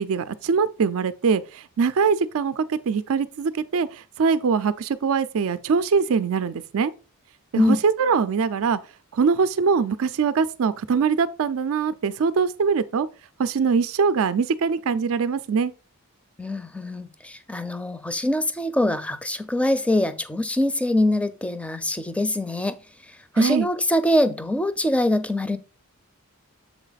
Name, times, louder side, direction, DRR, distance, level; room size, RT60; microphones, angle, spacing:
voice 1, 0.0-3.9 4.2-6.9 7.5-8.8 9.1-13.1 13.4-15.7 23.4-23.7, right 5 dB, 65° right, 0.4 m, -22 dB
voice 2, 16.4-22.8 23.3-25.6, left 1 dB, 5° left, 0.5 m, -23 dB
7.1 x 4.1 x 4.0 m
head